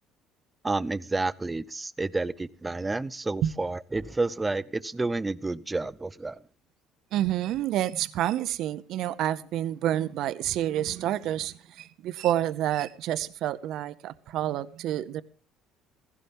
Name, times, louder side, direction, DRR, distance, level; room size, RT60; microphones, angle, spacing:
voice 1, 0.6-6.4, right 3 dB, 15° right, 0.6 m, -30 dB
voice 2, 7.1-15.2, right 12 dB, 65° right, 0.6 m, -29 dB
16.0 x 16.0 x 3.6 m
cardioid pair, 115°, 0 cm